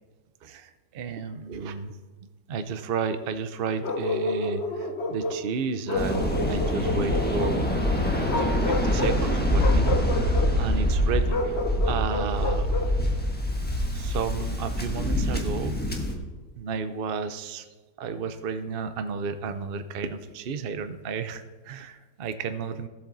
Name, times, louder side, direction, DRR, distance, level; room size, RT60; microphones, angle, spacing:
voice 1, 0.4-1.9 2.5-7.7 8.4-11.6 11.8-12.7 13.9-16.0 16.6-17.7 18.0-22.9, right 5 dB, 70° right, 10 dB, 0.5 m, -32 dB
Bark, 3.8-5.4 5.9-7.6 8.2-9.2 9.6-10.5 11.3-13.0, left 2 dB, 45° left, 1.1 m, -30 dB
Waves surf, 5.9-16.1, left 1 dB, 5° left, 1.1 m, -25 dB
16.5 x 7.7 x 4.0 m, 1.3 s
omnidirectional pair, 1.9 m